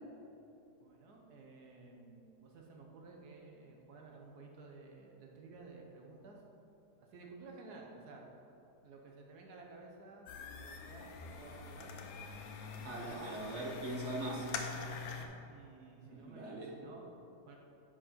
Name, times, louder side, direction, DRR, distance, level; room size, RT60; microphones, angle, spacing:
voice 1, 0.8-6.4 7.0-8.3 8.8-10.3 10.6-12.0 12.7-13.4 14.7-17.1 17.4-17.6, right 3 dB, 70° right, 0 dB, 1.5 m, -54 dB
sound 1, 10.3-15.3, left 5 dB, 80° left, 1.3 m, -44 dB
voice 2, 12.8-14.5 16.0-16.7, right 2 dB, 50° right, -3 dB, 1.1 m, -41 dB
10.5 x 4.8 x 4.2 m, 2.9 s
omnidirectional pair, 1.8 m